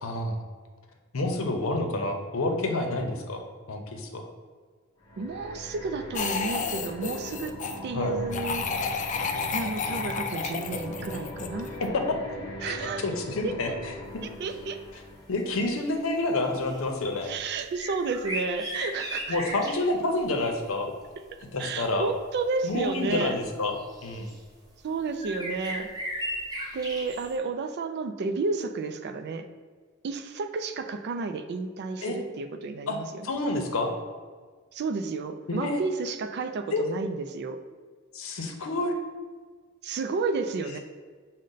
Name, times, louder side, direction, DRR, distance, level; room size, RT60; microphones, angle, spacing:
voice 1, 0.0-0.4 1.1-3.4 3.7-4.3 7.9-8.2 11.8-12.4 12.6-13.9 15.3-17.3 19.3-20.9 21.5-22.1 22.6-23.8 24.0-24.3 32.0-32.2 32.9-33.0 33.2-33.9 35.5-35.8 36.7-36.9 38.1-39.0, left 2 dB, 80° left, 4 dB, 0.7 m, -28 dB
sound 1, 5.0-15.5, equal, 20° left, 0.9 m, -40 dB
voice 2, 5.2-7.6 7.8-8.7 9.5-11.7 12.6-13.0 13.4-13.5 14.2-14.8 17.2-19.4 21.6-23.4 24.8-25.9 26.7-29.5 30.0-33.3 34.7-37.6 39.8-40.8, right 4 dB, 55° right, 9 dB, 0.3 m, -31 dB
sound 2, 6.1-7.8 8.3-11.8, left 5 dB, 35° left, 0.3 m, -31 dB
sound 3, 14.5-14.6 15.0-15.1 15.5-16.2 16.6-16.8 17.5-19.9 22.0-22.1 23.1-23.2 23.8-24.4 25.2-27.3, equal, 20° right, 0.8 m, -36 dB
6.3 x 2.1 x 3.9 m, 1.5 s
head